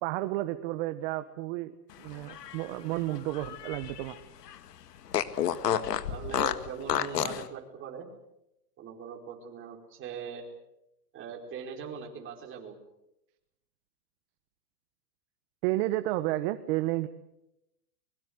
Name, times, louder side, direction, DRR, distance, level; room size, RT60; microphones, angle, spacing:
voice 1, 0.0-1.7 2.0-4.2 15.6-17.1, right 16 dB, 40° right, 11 dB, 1.3 m, -31 dB
Fart, 2.1-4.2 4.5-4.6 5.1-7.5, left 10 dB, 85° left, 1.9 m, -31 dB
voice 2, 5.7-8.1 8.8-10.4 11.1-12.8, right 6 dB, 25° right, 2 dB, 4.9 m, -41 dB
24.5 x 22.0 x 8.1 m, 0.86 s
hypercardioid pair, 150°, 47 cm